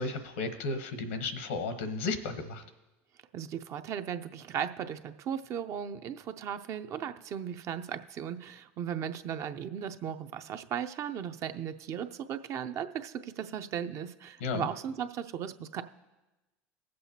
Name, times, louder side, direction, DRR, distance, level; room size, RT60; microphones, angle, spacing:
voice 1, 0.0-2.6 14.4-14.7, left 3 dB, 85° left, 9 dB, 1.0 m, -34 dB
voice 2, 3.3-15.8, right 8 dB, 50° right, 9 dB, 0.6 m, -36 dB
20.0 x 7.7 x 2.8 m, 1.1 s
hypercardioid pair, 90°, 7 cm